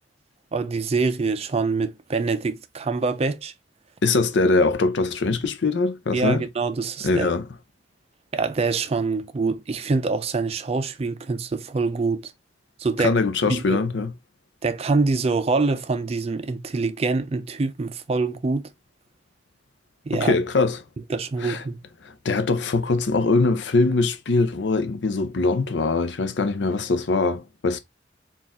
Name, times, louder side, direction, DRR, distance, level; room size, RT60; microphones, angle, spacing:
voice 1, 0.5-3.5 6.1-7.3 8.3-12.3 12.8-13.1 13.5-13.8 14.6-18.6 20.1-20.3 21.1-21.8, right 4 dB, 35° right, 0.4 m, -25 dB
voice 2, 4.0-6.4 7.0-7.5 13.0-14.1 20.1-20.8 21.4-21.6 22.0-27.8, left 3 dB, 75° left, 0.6 m, -22 dB
4.2 x 2.4 x 3.5 m
head